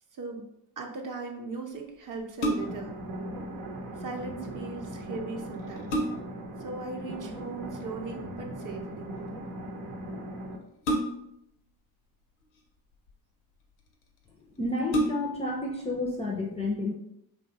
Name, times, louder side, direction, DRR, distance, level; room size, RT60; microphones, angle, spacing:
voice 1, 0.1-0.4 0.8-2.9 4.0-5.9 6.6-9.1, right 3 dB, 40° right, 3 dB, 0.6 m, -38 dB
sound 1, 2.2-3.0 5.0-5.1 5.5-6.5 8.0-8.4 10.8-11.5 12.4-13.1 13.9-14.0 14.3-14.4 14.8-15.5 16.0-16.1, right 1 dB, 90° left, 0.6 m, -30 dB
sound 2, 2.6-10.6, right 1 dB, 75° right, 0.7 m, -39 dB
voice 2, 14.6-16.9, left 2 dB, 15° left, -2 dB, 0.3 m, -30 dB
2.9 x 2.1 x 2.8 m, 0.78 s
hypercardioid pair, 55°, 50 cm